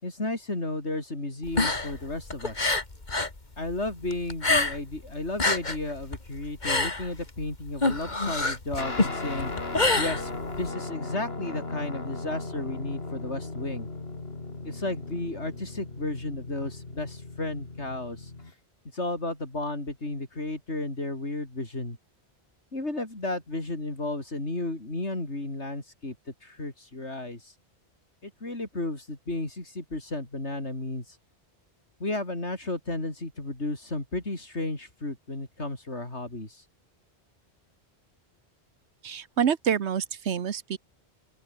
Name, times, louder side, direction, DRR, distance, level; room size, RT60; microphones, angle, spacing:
voice 1, 0.0-2.8 3.6-13.9 14.6-18.3 18.9-22.0 22.7-26.2 26.4-27.5 28.2-31.2 32.0-36.6, left 2 dB, 90° left, 5.6 m, -33 dB
sound 1, 1.4-3.4 3.7-5.0 5.3-10.7, left 2 dB, 40° left, 2.7 m, -26 dB
Guitar, 8.8-18.5, left 3 dB, 65° left, 3.2 m, -37 dB
voice 2, 39.0-40.8, right 8 dB, 80° right, 1.3 m, -27 dB
open air
omnidirectional pair, 1.1 m